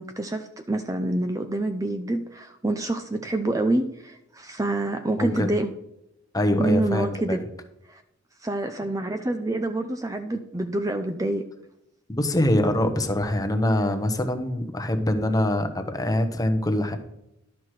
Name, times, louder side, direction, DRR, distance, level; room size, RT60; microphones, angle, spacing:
voice 1, 0.0-5.7 6.6-7.4 7.9-8.0 8.4-11.5, right 2 dB, 15° right, 7 dB, 0.5 m, -27 dB
voice 2, 5.2-5.5 6.3-7.4 12.1-17.0, left 1 dB, 20° left, 7 dB, 0.9 m, -24 dB
12.0 x 6.0 x 4.8 m, 0.83 s
head